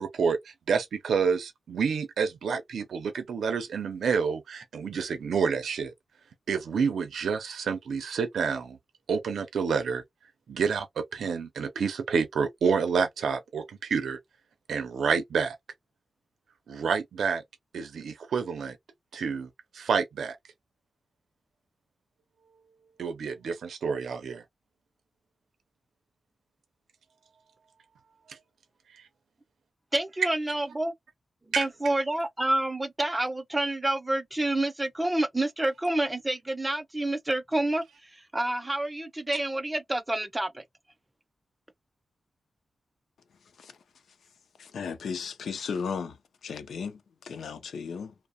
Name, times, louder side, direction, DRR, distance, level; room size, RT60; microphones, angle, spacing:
voice 1, 0.0-5.9 6.5-8.8 9.1-10.0 10.5-14.2 14.7-15.6 16.7-17.4 17.7-18.8 19.1-20.4 23.0-24.4 28.3-28.4 31.5-31.6, right 6 dB, 90° right, 0.5 m, -28 dB
voice 2, 29.9-30.9 31.6-37.8 38.1-40.6, right 1 dB, 10° right, 0.4 m, -28 dB
voice 3, 44.6-46.2 46.4-48.1, left 6 dB, 85° left, 0.4 m, -35 dB
2.7 x 2.0 x 2.5 m
wide cardioid pair, 150°, 0 cm